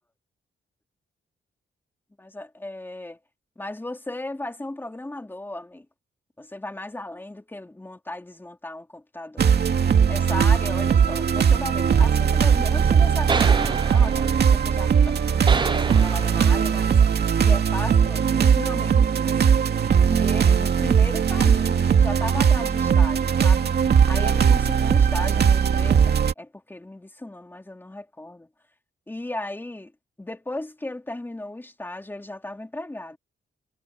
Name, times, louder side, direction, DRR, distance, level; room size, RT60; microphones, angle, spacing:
voice 1, 2.2-3.2 3.6-5.8 6.4-9.5 10.1-17.0 17.4-19.7 20.1-23.8 24.1-28.5 29.1-29.9 30.2-33.2, left 1 dB, 10° left, 3.0 m, -36 dB
sound 1, 9.4-26.3, right 7 dB, 60° right, 2.4 m, -19 dB
sound 2, 12.3-17.3, right 4 dB, 25° right, 0.8 m, -30 dB
wide cardioid pair, 170°, 19 cm